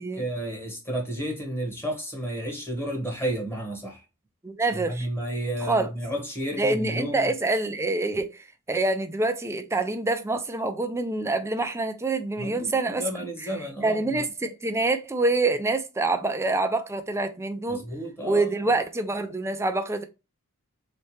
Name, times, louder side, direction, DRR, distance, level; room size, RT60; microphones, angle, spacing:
voice 1, 0.0-4.0 4.7-7.3 12.4-14.2 17.7-18.5, right 1 dB, 10° left, 1.2 m, -32 dB
voice 2, 4.4-5.1 5.6-5.9 6.6-13.0 13.4-13.5 13.8-17.8 18.2-20.0, right 2 dB, 10° right, 0.4 m, -26 dB
3.2 x 3.1 x 3.1 m
head